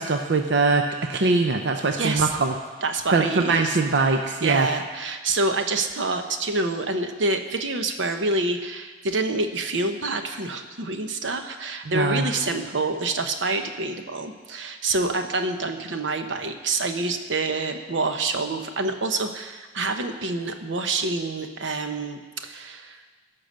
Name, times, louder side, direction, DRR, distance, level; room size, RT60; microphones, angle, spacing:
voice 1, 0.0-2.5 3.1-4.7 11.9-12.2, right 3 dB, 70° right, 5 dB, 0.6 m, -22 dB
voice 2, 2.0-2.3 2.8-3.8 4.4-23.0, right 3 dB, 90° right, 7 dB, 0.9 m, -27 dB
15.5 x 5.8 x 6.5 m, 1.4 s
head